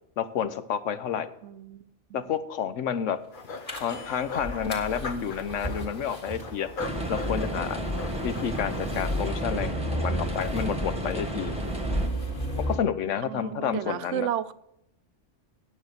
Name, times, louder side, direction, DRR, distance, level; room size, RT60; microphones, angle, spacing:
voice 1, 0.2-1.3 2.1-3.2 3.8-6.7 7.1-7.8 8.2-11.5 12.7-14.3, left 8 dB, 85° left, 12 dB, 1.1 m, -30 dB
voice 2, 1.4-1.8 2.1-2.2 13.3-14.5, right 11 dB, 80° right, 15 dB, 0.9 m, -32 dB
sound 1, 3.3-9.0, left 3 dB, 45° left, 1.0 m, -40 dB
sound 2, 3.7-12.8, right 1 dB, 30° left, 2.2 m, -33 dB
sound 3, 6.8-12.1, equal, 5° right, 1.3 m, -33 dB
9.5 x 7.5 x 6.5 m, 0.80 s
omnidirectional pair, 1.2 m